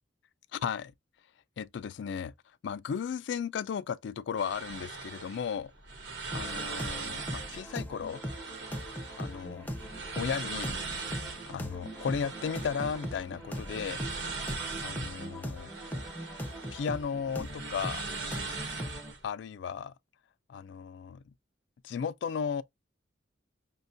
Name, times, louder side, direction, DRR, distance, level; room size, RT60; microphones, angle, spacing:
voice 1, 0.5-0.9 1.6-2.3 2.6-5.7 6.3-8.2 9.2-9.7 10.2-10.8 11.5-14.0 14.8-15.7 16.7-18.0 19.2-19.9 20.5-21.2 21.8-22.6, left 7 dB, 65° left, 0.3 m, -35 dB
sound 1, 4.4-19.2, right 4 dB, 65° right, 1.0 m, -40 dB
sound 2, 6.3-19.1, equal, 10° left, 0.5 m, -40 dB
5.6 x 2.2 x 2.5 m
head